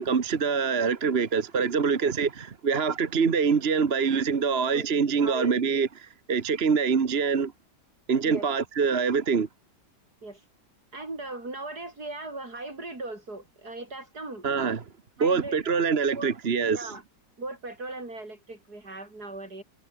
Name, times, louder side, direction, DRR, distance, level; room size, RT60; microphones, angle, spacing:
voice 1, 0.0-7.5 8.1-9.5 14.4-14.8 15.2-16.9, right 5 dB, 40° right, 1.4 m, -25 dB
voice 2, 4.5-4.9 5.2-5.6 8.3-8.5 10.2-10.4 10.9-14.5 15.2-15.7 16.1-16.4 16.7-17.0 17.4-19.6, right 2 dB, 60° right, 6.8 m, -38 dB
omnidirectional pair, 1.8 m